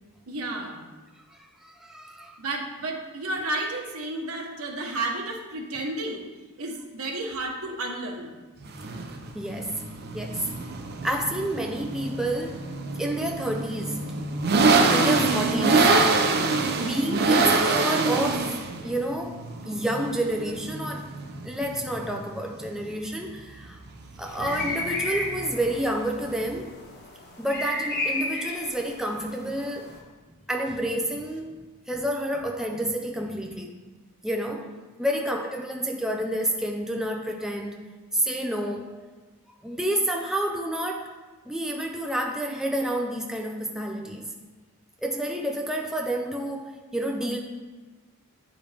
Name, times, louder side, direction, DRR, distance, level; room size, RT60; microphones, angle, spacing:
voice 1, 0.3-0.8 2.4-6.2 6.6-8.3 35.0-35.2, right 2 dB, 70° right, 1 dB, 1.2 m, -32 dB
voice 2, 1.3-2.4 9.3-9.8 10.1-10.5 11.0-12.7 13.0-14.2 14.9-23.8 24.2-26.8 27.4-30.0 30.5-31.6 31.9-33.8 34.2-34.7 35.0-38.9 39.6-41.1 41.5-44.3 45.0-47.4, right 1 dB, ahead, 1 dB, 0.4 m, -29 dB
sound 1, 8.6-26.6, right 3 dB, 45° right, 0.6 m, -25 dB
sound 2, 24.2-29.0, right 1 dB, 90° left, 1.7 m, -45 dB
sound 3, 24.3-30.0, left 2 dB, 45° left, 1.4 m, -33 dB
9.5 x 5.0 x 3.4 m, 1.3 s
head